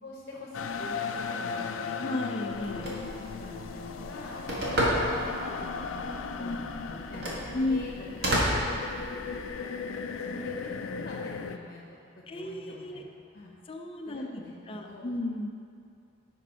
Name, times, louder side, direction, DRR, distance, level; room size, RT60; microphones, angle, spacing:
voice 1, 0.0-2.0 3.2-4.4 5.3-7.9 8.2-8.6 9.6-9.7 10.1-13.0 13.3-13.5 14.1-15.1, left 1 dB, 55° left, -3 dB, 1.0 m, -45 dB
sound 1, 0.5-11.6, left 5 dB, 85° left, 0.4 m, -37 dB
voice 2, 2.0-3.0 6.4-6.6 7.5-7.8 12.3-13.0 13.7-14.4 14.7-15.5, left 2 dB, 30° left, 4 dB, 0.6 m, -33 dB
Telephone, 2.5-9.5, equal, 60° right, 1.7 m, -32 dB
8.1 x 5.3 x 5.6 m, 2.4 s
head